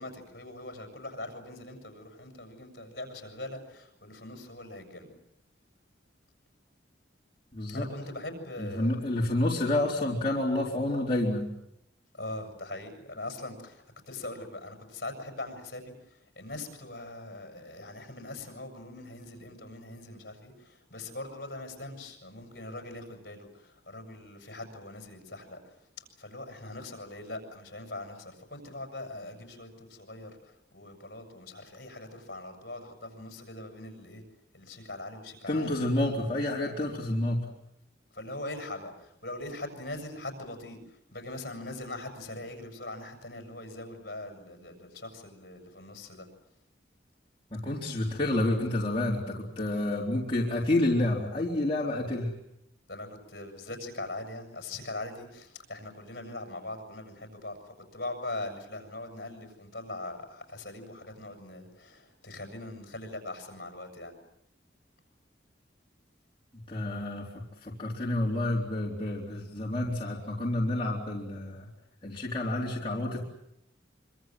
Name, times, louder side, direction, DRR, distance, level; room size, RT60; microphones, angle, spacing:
voice 1, 0.0-5.1 7.7-9.0 12.2-15.9 16.3-25.6 26.2-34.2 34.5-35.7 38.1-40.8 41.1-46.3 52.9-57.5 57.9-64.1, left 2 dB, 55° left, 4 dB, 6.8 m, -41 dB
voice 2, 7.5-7.9 8.6-11.5 35.5-37.4 47.5-52.3 66.7-67.3 67.6-71.7 72.0-73.2, left 1 dB, 30° left, -4 dB, 3.9 m, -29 dB
25.5 x 25.5 x 7.8 m, 0.78 s
head